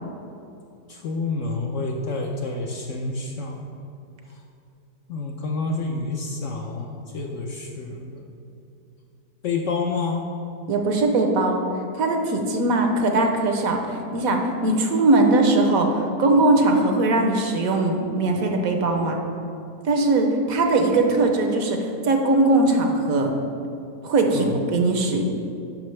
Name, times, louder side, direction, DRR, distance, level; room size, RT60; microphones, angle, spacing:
voice 1, 0.9-3.6 5.1-8.2 9.4-10.2 24.3-24.5, left 3 dB, 65° left, 1 dB, 0.8 m, -28 dB
voice 2, 10.7-11.6 11.9-19.2 19.8-23.3 24.0-25.2, right 2 dB, 65° right, 3 dB, 1.1 m, -20 dB
10.0 x 5.9 x 3.2 m, 2.6 s
omnidirectional pair, 1.7 m